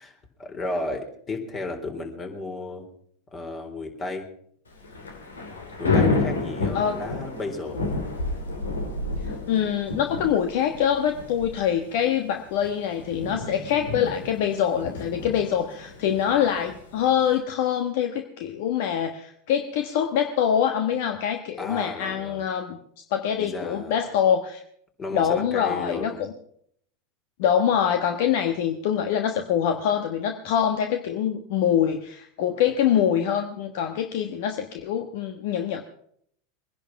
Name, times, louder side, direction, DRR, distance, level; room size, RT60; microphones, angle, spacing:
voice 1, 0.0-2.9 3.3-4.3 5.8-7.9 21.6-22.4 23.4-23.9 25.0-26.3, left 2 dB, 30° left, 4 dB, 3.9 m, -33 dB
Thunder / Rain, 4.7-17.4, left 3 dB, 85° left, 2.9 m, -30 dB
voice 2, 9.2-22.8 23.1-24.6 25.1-26.3 27.4-35.8, left 9 dB, 60° left, 6 dB, 1.3 m, -24 dB
21.5 x 11.0 x 5.9 m, 0.66 s
hypercardioid pair, 90°, 0 cm